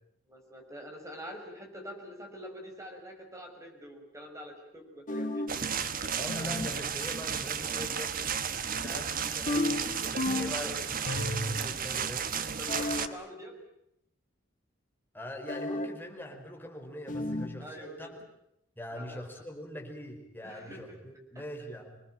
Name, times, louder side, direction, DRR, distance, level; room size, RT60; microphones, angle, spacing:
voice 1, 0.3-5.5 10.3-10.9 12.6-13.6 17.6-18.2 18.9-19.2 20.4-21.0 21.3-21.4, equal, 15° right, 2 dB, 6.2 m, -45 dB
sound 1, 5.1-5.6 6.3-6.8 9.5-10.7 11.1-11.7 12.7-13.2 15.5-16.0 17.1-17.6, left 1 dB, 40° left, 1.8 m, -33 dB
sound 2, 5.5-13.1, right 7 dB, 45° right, 1.3 m, -33 dB
voice 2, 6.1-8.1 8.5-12.3 15.1-18.2 18.8-22.0, left 1 dB, 10° left, 2 dB, 5.1 m, -43 dB
27.0 x 20.0 x 9.0 m, 0.76 s
head